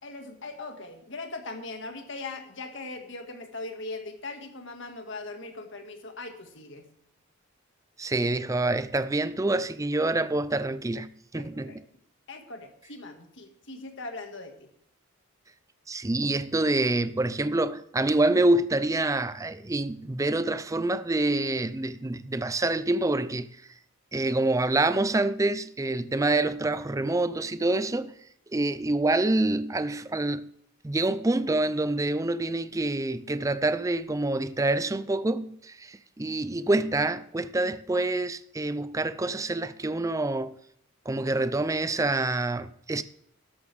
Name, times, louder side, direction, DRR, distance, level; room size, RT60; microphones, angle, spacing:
voice 1, 0.0-6.9 11.3-11.8 12.3-14.7, left 3 dB, 55° left, 1.8 m, -40 dB
voice 2, 8.0-11.1 11.3-11.8 15.9-23.5 24.1-28.1 28.5-30.5 30.8-40.6 41.1-43.0, right 2 dB, 15° right, 0.4 m, -26 dB
13.0 x 11.5 x 3.4 m
head